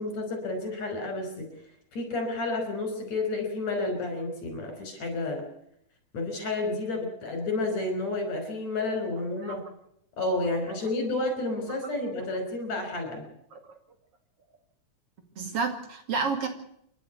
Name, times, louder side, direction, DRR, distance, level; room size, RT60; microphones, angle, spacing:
voice 1, 0.0-1.5 1.9-5.5 6.1-9.6 10.2-13.3, left 2 dB, 65° left, 5 dB, 6.7 m, -30 dB
voice 2, 15.4-16.5, right 5 dB, 50° right, 6 dB, 3.2 m, -31 dB
29.0 x 11.5 x 8.4 m, 0.72 s
omnidirectional pair, 3.4 m